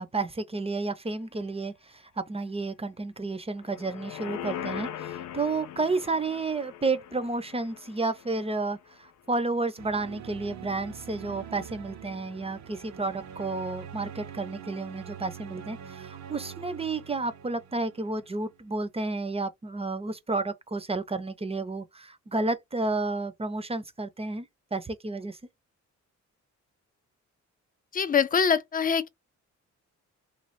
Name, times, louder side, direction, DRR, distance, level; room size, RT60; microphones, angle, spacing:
voice 1, 0.0-25.4, right 3 dB, 20° right, 0.6 m, -31 dB
sound 1, 3.6-8.9 9.3-9.4, left 10 dB, 80° left, 0.5 m, -40 dB
sound 2, 9.8-18.6, right 8 dB, 65° right, 0.7 m, -44 dB
voice 2, 27.9-29.1, left 6 dB, 30° left, 0.5 m, -24 dB
3.2 x 2.3 x 4.0 m
cardioid pair, 100°, 30 cm